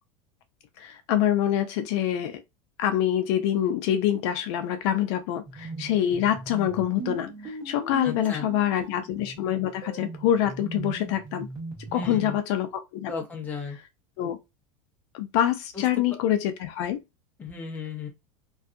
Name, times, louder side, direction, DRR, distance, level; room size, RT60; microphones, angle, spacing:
voice 1, 0.8-2.4 2.8-11.5 11.9-12.7 12.9-13.1 14.2-14.4 15.1-17.0, left 11 dB, 60° left, 0.5 m, -25 dB
sound 1, 5.4-12.3, right 3 dB, 25° right, 1.1 m, -39 dB
voice 2, 8.0-8.5 11.9-12.4 13.1-13.8 15.7-15.8 17.4-18.1, left 5 dB, 10° left, 0.6 m, -35 dB
2.6 x 2.4 x 2.4 m
supercardioid pair, 160°, 17 cm